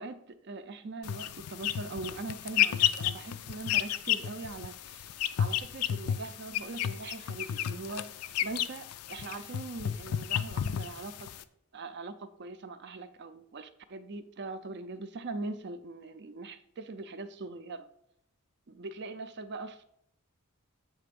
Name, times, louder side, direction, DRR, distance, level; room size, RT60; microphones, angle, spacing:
voice 1, 0.0-11.3 11.7-17.9 18.7-19.8, right 3 dB, 50° right, 10 dB, 0.5 m, -41 dB
sound 1, 1.0-11.4, left 10 dB, 75° left, 0.4 m, -32 dB
7.9 x 3.3 x 5.2 m, 0.76 s
head